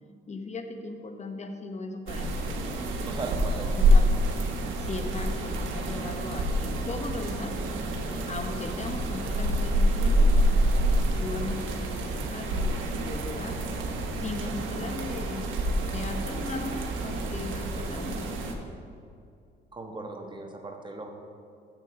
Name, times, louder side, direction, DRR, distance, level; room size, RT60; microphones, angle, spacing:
voice 1, 0.3-3.3 3.8-4.0 4.8-7.5 8.3-10.3 11.2-13.6 14.2-15.5 15.8-18.3, left 3 dB, 35° left, 5 dB, 1.0 m, -38 dB
sound 1, 2.1-18.5, right 1 dB, 85° right, 1.1 m, -27 dB
voice 2, 3.1-3.8 5.9-6.2 8.3-8.4 10.8-11.1 19.7-21.1, right 3 dB, 25° right, 2 dB, 1.3 m, -39 dB
7.2 x 7.0 x 5.8 m, 2.3 s
cardioid pair, 90°, 20 cm